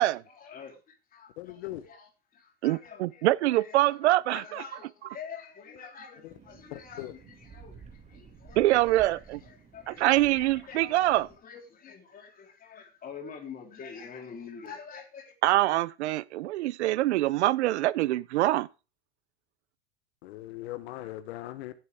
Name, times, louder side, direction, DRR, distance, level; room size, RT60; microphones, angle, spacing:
voice 1, 0.3-15.4, left 6 dB, 25° left, 3.6 m, -47 dB
voice 2, 1.4-1.9 6.2-6.3 6.7-7.1 20.2-21.7, left 15 dB, 70° left, 1.2 m, -39 dB
voice 3, 2.6-4.6 8.6-9.4 9.9-11.3 15.4-18.7, right 16 dB, 80° right, 0.7 m, -24 dB
sound 1, 6.3-11.4, right 5 dB, 20° right, 2.3 m, -52 dB
15.5 x 7.8 x 3.6 m
supercardioid pair, 130°, 33 cm